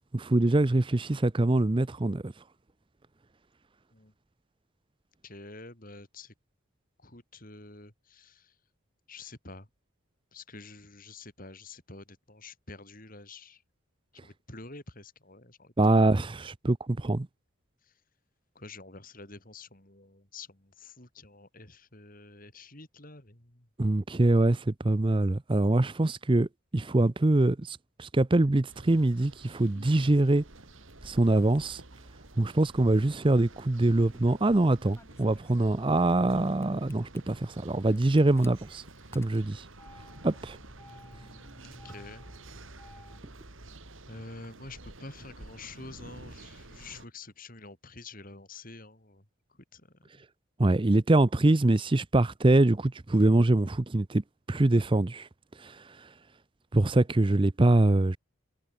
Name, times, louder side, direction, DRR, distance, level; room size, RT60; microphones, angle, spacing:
voice 1, 0.1-2.3 15.8-17.3 23.8-26.5 26.7-30.4 31.0-31.8 32.4-38.8 39.1-39.7 40.2-40.6 50.6-54.2 54.5-55.3 55.6-56.1 56.7-58.2, right 2 dB, 25° right, 0.5 m, -24 dB
voice 2, 5.2-6.3 7.0-8.6 9.1-9.7 10.3-13.6 14.2-16.1 17.8-18.0 18.5-23.7 41.0-42.2 44.1-50.1, left 3 dB, 40° left, 4.3 m, -48 dB
sound 1, 28.7-47.1, right 2 dB, 70° right, 3.1 m, -50 dB
Engine starting, 33.6-34.2 35.0-36.4 36.6-37.2 37.9-43.2, left 1 dB, 10° left, 5.6 m, -54 dB
head